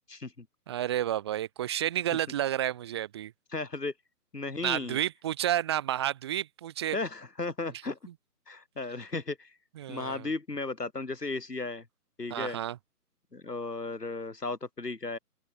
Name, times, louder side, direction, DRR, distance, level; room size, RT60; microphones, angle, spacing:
voice 1, 0.1-0.5 3.5-3.9 4.3-5.0 6.9-8.0 8.5-9.5 9.9-11.9 12.2-12.6 13.3-15.2, left 3 dB, 90° left, 4.7 m, -35 dB
voice 2, 0.7-3.3 4.6-7.0 9.8-10.3 12.3-12.8, right 12 dB, 15° right, 1.4 m, -30 dB
open air
figure-of-eight pair, 155°, 46 cm